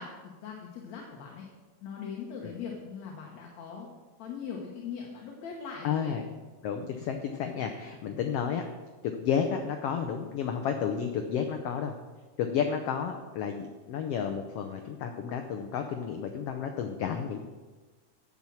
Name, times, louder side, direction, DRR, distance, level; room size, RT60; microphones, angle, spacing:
voice 1, 0.0-1.5 1.8-3.9 4.2-6.1 8.1-8.3, left 6 dB, 65° left, -1 dB, 2.4 m, -40 dB
voice 2, 5.8-6.2 6.6-8.6 9.2-11.9 12.4-17.4, left 7 dB, 80° left, 5 dB, 1.3 m, -31 dB
10.5 x 6.1 x 7.1 m, 1.3 s
omnidirectional pair, 3.6 m